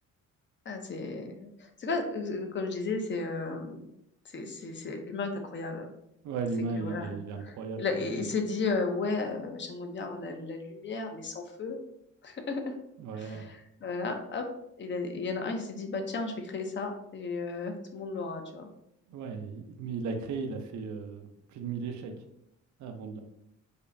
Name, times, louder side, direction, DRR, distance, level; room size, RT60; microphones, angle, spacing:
voice 1, 0.7-3.9 4.3-5.9 6.8-7.2 7.4-11.8 12.2-12.6 13.2-14.4 14.8-18.7, left 3 dB, 40° left, 5 dB, 0.6 m, -34 dB
voice 2, 6.2-8.3 13.0-13.5 19.1-22.3 22.8-23.2, right 4 dB, 70° right, 5 dB, 0.6 m, -36 dB
5.1 x 2.1 x 2.6 m, 0.79 s
cardioid pair, 90°, 30 cm